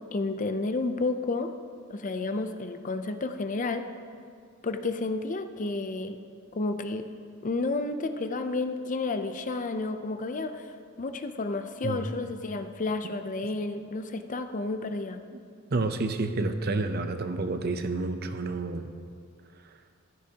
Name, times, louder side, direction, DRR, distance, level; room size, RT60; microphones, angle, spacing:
voice 1, 0.1-1.5 1.9-3.9 4.6-6.2 6.5-7.1 7.4-15.2, left 3 dB, 40° left, 8 dB, 0.5 m, -31 dB
voice 2, 15.7-18.9, right 3 dB, 50° right, 8 dB, 0.7 m, -29 dB
15.0 x 12.5 x 2.9 m, 2.2 s
head